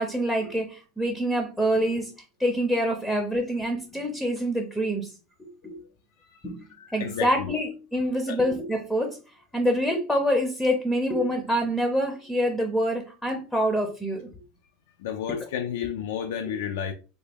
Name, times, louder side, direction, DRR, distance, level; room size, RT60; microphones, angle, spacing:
voice 1, 0.0-2.1 2.4-5.1 5.6-5.8 6.4-6.6 6.9-9.2 9.5-14.3, equal, 5° left, 0.5 m, -26 dB
voice 2, 6.2-7.6 8.3-8.4 15.0-16.9, left 8 dB, 85° left, 0.3 m, -32 dB
3.3 x 2.1 x 3.4 m
supercardioid pair, 155°, 0 cm